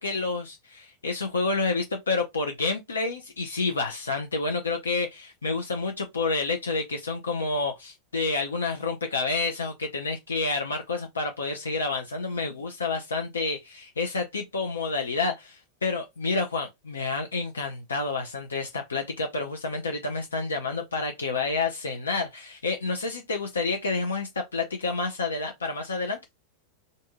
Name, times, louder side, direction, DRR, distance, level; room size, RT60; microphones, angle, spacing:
voice 1, 0.0-26.2, left 3 dB, 70° left, 0.5 m, -29 dB
2.7 x 2.6 x 3.5 m
figure-of-eight pair, 90°, 0 cm